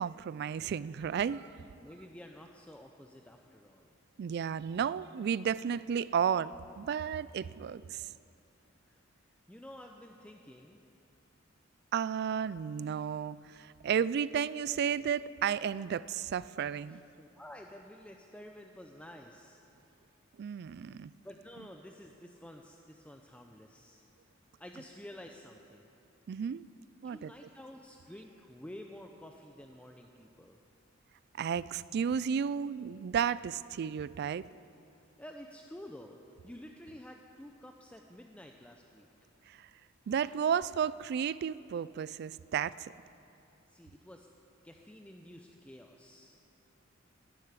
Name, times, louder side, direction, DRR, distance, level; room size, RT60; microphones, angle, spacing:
voice 1, 0.0-1.5 4.2-8.1 11.9-17.0 20.4-21.1 26.3-26.6 27.0-27.3 31.4-34.4 39.5-39.7 40.1-42.9, right 7 dB, 55° right, 19 dB, 0.3 m, -33 dB
voice 2, 1.8-3.9 8.9-9.0 9.5-10.8 16.9-20.0 21.2-24.1 24.6-25.9 27.0-30.6 35.2-39.1 43.7-44.3 44.6-46.4, left 1 dB, 5° left, 3 dB, 0.6 m, -50 dB
11.5 x 10.0 x 9.6 m, 2.7 s
head